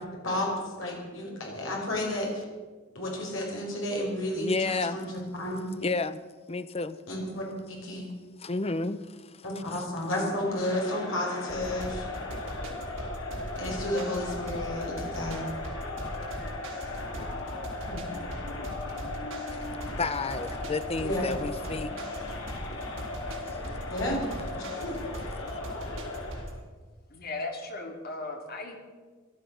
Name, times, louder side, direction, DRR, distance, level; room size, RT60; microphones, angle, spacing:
voice 1, 0.2-2.4 2.9-5.7 7.1-8.0 9.4-12.0 13.5-15.5 17.8-18.1 21.0-21.2 23.9-24.2 24.5-24.9, left 1 dB, 70° left, -1 dB, 5.2 m, -32 dB
voice 2, 4.4-5.0 5.8-6.2 6.5-7.0 8.4-9.4 9.7-9.8 19.9-22.0 23.4-23.6, left 3 dB, 30° left, 13 dB, 0.7 m, -31 dB
Crowd, 10.4-26.6, left 2 dB, 90° left, 3.5 m, -38 dB
sound 1, 11.5-26.6, right 1 dB, 80° right, 4.2 m, -40 dB
voice 3, 27.1-28.8, left 2 dB, 50° left, 3 dB, 2.6 m, -36 dB
17.0 x 12.5 x 6.5 m, 1.4 s
head